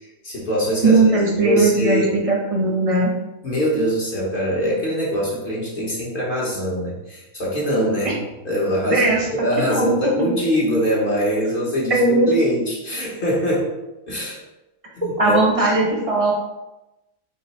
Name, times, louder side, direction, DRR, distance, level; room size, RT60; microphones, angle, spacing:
voice 1, 0.2-1.1 1.4-2.2 3.4-9.0 9.3-13.7 14.1-14.4 15.0-15.7, equal, 40° left, -5 dB, 1.0 m, -23 dB
voice 2, 0.8-3.1 8.0-8.1 8.9-9.9 10.2-10.3 11.9-12.3 15.2-16.3, right 2 dB, 30° right, -2 dB, 0.6 m, -18 dB
3.8 x 2.6 x 4.1 m, 0.99 s
omnidirectional pair, 1.5 m